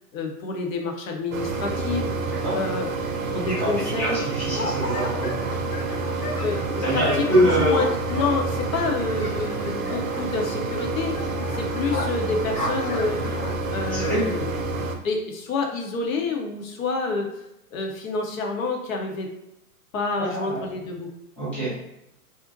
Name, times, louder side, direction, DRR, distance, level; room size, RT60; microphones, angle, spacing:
voice 1, 0.1-2.1 2.5-2.9 3.2-4.2 6.4-7.3 7.5-11.1 11.5-13.3 13.7-14.5 15.0-17.3 17.7-19.3 19.9-21.1, left 3 dB, 60° left, 2 dB, 0.7 m, -28 dB
sound 1, 1.3-15.0, right 3 dB, 60° right, 0.6 m, -28 dB
voice 2, 4.0-5.3 6.8-7.8 13.9-14.3 20.2-20.6 21.4-21.7, equal, 5° left, -10 dB, 0.4 m, -24 dB
sound 2, 4.4-13.5, left 1 dB, 80° left, 1.1 m, -34 dB
2.5 x 2.1 x 3.8 m, 0.87 s
hypercardioid pair, 120°, 46 cm